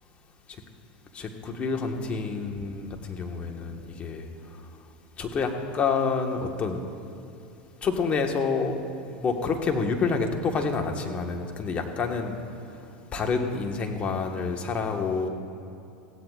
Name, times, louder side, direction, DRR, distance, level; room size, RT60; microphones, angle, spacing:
voice 1, 1.1-4.3 5.2-6.8 7.8-8.8 9.1-12.3 13.1-15.3, left 4 dB, 35° left, 3 dB, 1.6 m, -28 dB
21.5 x 16.0 x 2.5 m, 2.8 s
hypercardioid pair, 95°, 4 cm